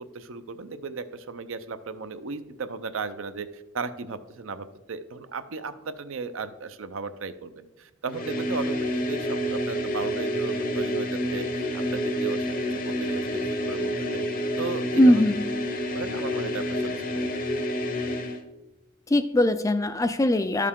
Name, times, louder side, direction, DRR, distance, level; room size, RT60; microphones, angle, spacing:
voice 1, 0.0-14.2 14.6-15.2 15.9-17.3, right 4 dB, 70° right, 11 dB, 0.6 m, -36 dB
sound 1, 8.1-18.4, equal, 40° left, 0.8 m, -28 dB
voice 2, 15.0-15.4 19.1-20.7, left 1 dB, 15° left, 11 dB, 0.3 m, -20 dB
12.0 x 6.6 x 3.7 m, 1.0 s
head